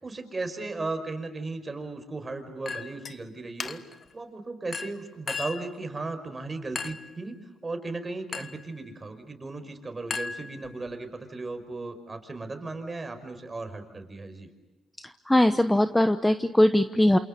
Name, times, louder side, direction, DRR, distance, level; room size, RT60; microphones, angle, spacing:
voice 1, 0.0-3.8 4.1-7.4 7.6-14.5, right 3 dB, 25° right, 7 dB, 5.4 m, -36 dB
Chink clink, 2.7-3.2 3.6-4.0 4.7-5.7 6.8-7.1 8.3-8.7 10.1-10.9, left 4 dB, 40° left, 1.6 m, -36 dB
voice 2, 15.0-17.2, left 1 dB, 10° left, 10 dB, 1.0 m, -21 dB
28.0 x 28.0 x 6.9 m, 1.0 s
cardioid pair, 90°, 0 cm